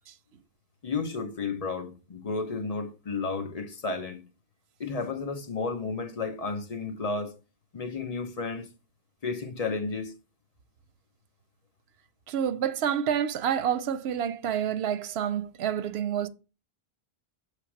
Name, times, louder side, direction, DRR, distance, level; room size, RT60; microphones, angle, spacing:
voice 1, 0.8-4.3 4.8-7.4 7.7-8.7 9.2-10.1, left 4 dB, 40° left, 0.8 m, -32 dB
voice 2, 12.3-16.3, right 9 dB, 85° right, 0.8 m, -28 dB
6.2 x 3.2 x 5.8 m
omnidirectional pair, 1.0 m